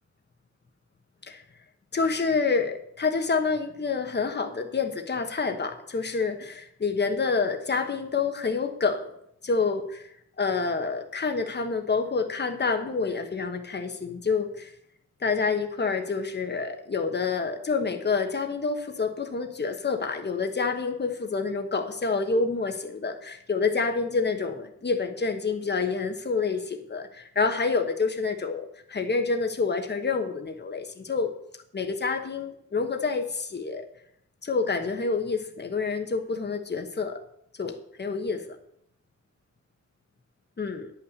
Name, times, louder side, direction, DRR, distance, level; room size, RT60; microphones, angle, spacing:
voice 1, 1.9-9.1 9.4-10.1 10.4-14.7 15.2-31.3 31.7-33.8 34.4-37.2 37.6-38.4 40.6-40.9, left 4 dB, 35° left, 6 dB, 1.2 m, -28 dB
10.0 x 6.0 x 8.0 m, 0.74 s
wide cardioid pair, 110°, 30 cm